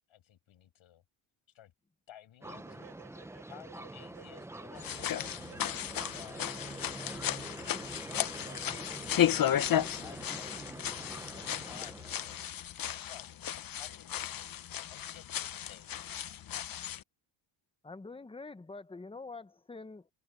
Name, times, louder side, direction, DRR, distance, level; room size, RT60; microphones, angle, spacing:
voice 1, 0.1-1.0 1.5-1.7 2.1-2.9 3.5-5.6 6.1-7.6 8.1-8.8 10.0-12.4 12.7-13.3 13.7-14.3 14.9-15.9, left 11 dB, 70° left, 7.9 m, -55 dB
sound 1, 2.4-12.5, right 2 dB, 5° right, 0.6 m, -45 dB
voice 2, 2.4-6.4 6.8-7.7 8.1-10.4, right 11 dB, 65° right, 5.1 m, -58 dB
sound 2, 4.8-17.0, left 11 dB, 45° left, 0.9 m, -34 dB
voice 3, 17.8-20.1, left 3 dB, 10° left, 1.0 m, -45 dB
cardioid pair, 105°, 49 cm